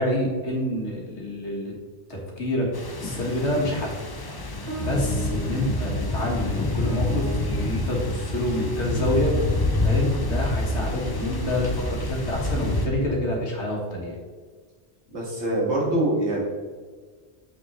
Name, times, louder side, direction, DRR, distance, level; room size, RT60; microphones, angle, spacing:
voice 1, 0.0-1.7 2.1-2.7 3.0-3.9 4.8-9.3 9.8-14.2 15.1-15.2, left 1 dB, 90° left, -1 dB, 1.8 m, -27 dB
sound 1, 2.7-12.9, left 2 dB, 25° left, 0.6 m, -27 dB
sound 2, 4.7-13.3, right 2 dB, 55° right, 1.5 m, -39 dB
voice 2, 15.1-16.4, right 1 dB, 80° right, -4 dB, 2.3 m, -24 dB
7.1 x 6.4 x 3.1 m, 1.5 s
omnidirectional pair, 1.1 m